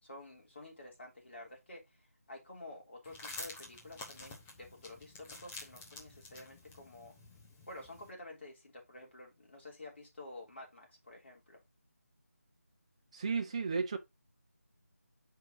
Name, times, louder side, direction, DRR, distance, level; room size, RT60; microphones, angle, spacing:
voice 1, 0.0-7.1 7.7-11.6, left 2 dB, 50° left, 3.2 m, -51 dB
sound 1, 3.0-8.1, left 2 dB, 5° left, 0.3 m, -49 dB
voice 2, 13.1-14.0, right 5 dB, 25° right, 0.7 m, -33 dB
6.0 x 4.8 x 3.7 m
figure-of-eight pair, 165°, 8 cm